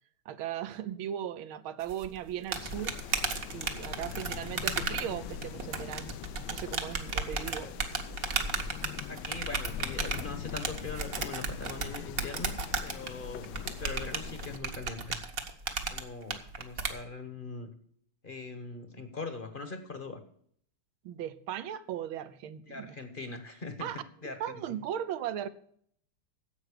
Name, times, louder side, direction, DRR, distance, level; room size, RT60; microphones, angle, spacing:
voice 1, 0.2-2.9 3.5-6.1 6.5-7.7 21.0-22.9 23.8-25.5, right 10 dB, 75° right, 14 dB, 1.6 m, -37 dB
sound 1, 1.9-16.9, right 5 dB, 45° right, 1.4 m, -34 dB
sound 2, 2.5-14.6, left 9 dB, 75° left, 1.3 m, -42 dB
voice 2, 7.3-7.7 9.1-15.2 15.9-17.7 18.2-20.2 22.7-23.9 24.2-24.8, left 3 dB, 30° left, 8 dB, 1.1 m, -42 dB
11.0 x 7.9 x 6.7 m, 0.63 s
omnidirectional pair, 2.4 m